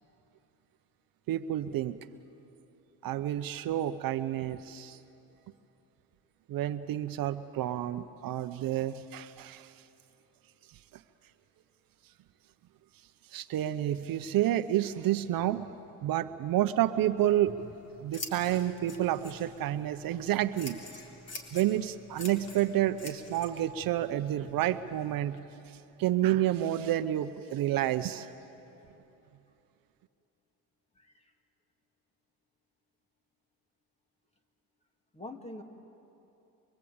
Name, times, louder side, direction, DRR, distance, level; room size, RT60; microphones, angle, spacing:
voice 1, 1.3-2.0 3.0-5.0 6.5-9.7 13.3-15.7 16.0-17.6 18.0-20.8 21.5-25.4 26.0-28.3, right 12 dB, 60° right, 11 dB, 0.8 m, -29 dB
Scissors, 17.2-25.4, left 2 dB, 40° left, 3.7 m, -47 dB
voice 2, 30.9-31.3 35.1-35.6, left 1 dB, 15° left, 4 dB, 2.4 m, -44 dB
24.0 x 23.5 x 8.7 m, 2.9 s
cardioid pair, 100°, 39 cm